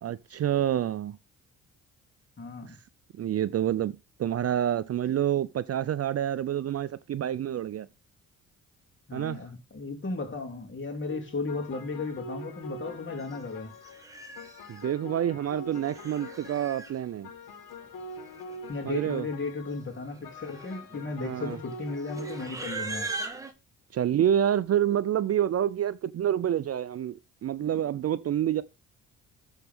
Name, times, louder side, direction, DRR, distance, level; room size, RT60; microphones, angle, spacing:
voice 1, 0.0-1.2 2.7-2.8 3.2-7.9 9.1-9.4 14.7-17.3 18.9-19.3 21.2-21.6 23.9-28.6, right 10 dB, 45° right, 0.5 m, -28 dB
voice 2, 2.4-2.8 9.1-13.7 18.7-23.1, left 3 dB, 35° left, 2.9 m, -35 dB
sound 1, 11.1-22.5, left 1 dB, 70° left, 1.4 m, -44 dB
Livestock farm animals working animals, 13.3-13.5 13.8-14.8 15.7-16.9 18.0-18.1 18.3-18.7 19.0-19.3 19.9-23.5, right 3 dB, 10° right, 1.7 m, -40 dB
13.0 x 4.5 x 3.6 m
supercardioid pair, 70°, 35 cm